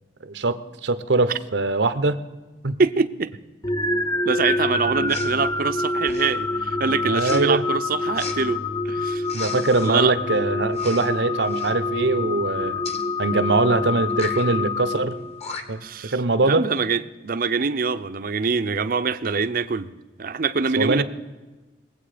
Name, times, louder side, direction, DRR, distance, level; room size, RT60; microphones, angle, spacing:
voice 1, 0.2-2.2 2.6-2.8 7.0-7.6 9.3-12.8 13.2-15.2 15.7-16.7 20.8-21.0, right 3 dB, 80° right, 12 dB, 0.9 m, -22 dB
voice 2, 2.8-3.3 4.2-8.6 8.8-9.3 9.8-10.2 15.8-16.2 16.4-19.9 20.2-21.0, right 5 dB, 55° right, 12 dB, 0.6 m, -24 dB
sound 1, 3.6-15.6, left 2 dB, 20° left, 0.5 m, -26 dB
Respiratory sounds, 5.1-5.3 6.0-6.4 7.1-7.4 8.1-8.4 9.2-9.9 10.7-11.1 11.4-11.7 12.8-13.0 14.1-14.4 15.1-15.2 15.4-15.9, left 4 dB, 35° left, 1.3 m, -36 dB
21.0 x 8.3 x 5.0 m, 1.2 s
head